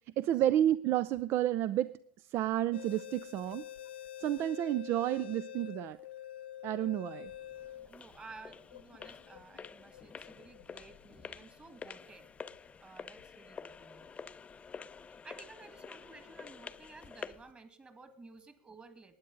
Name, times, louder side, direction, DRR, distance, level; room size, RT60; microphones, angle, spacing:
voice 1, 0.2-3.7 4.2-6.0 6.6-7.3, right 12 dB, 45° right, 17 dB, 0.4 m, -31 dB
sound 1, 2.7-11.9 12.5-12.6 13.2-13.4, left 12 dB, 80° left, 0.7 m, -47 dB
sound 2, 7.3-17.5, left 5 dB, 20° left, 0.5 m, -49 dB
voice 2, 7.9-12.3 12.8-14.2 15.1-19.1, right 3 dB, 20° right, 10 dB, 2.0 m, -54 dB
19.5 x 9.4 x 3.9 m, 0.65 s
hypercardioid pair, 90°, 6 cm